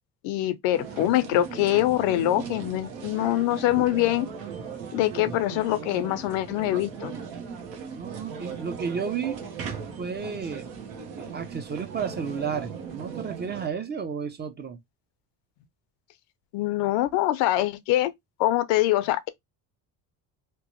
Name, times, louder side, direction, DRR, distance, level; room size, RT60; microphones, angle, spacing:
voice 1, 0.2-4.3 4.9-7.1 16.5-18.1 18.4-19.3, left 14 dB, 90° left, 0.6 m, -24 dB
sound 1, 0.7-13.7, right 6 dB, 90° right, 0.9 m, -38 dB
voice 2, 7.9-9.4 10.0-10.7 11.2-14.8, right 6 dB, 25° right, 0.4 m, -32 dB
2.9 x 2.1 x 2.8 m
cardioid pair, 100°, 43 cm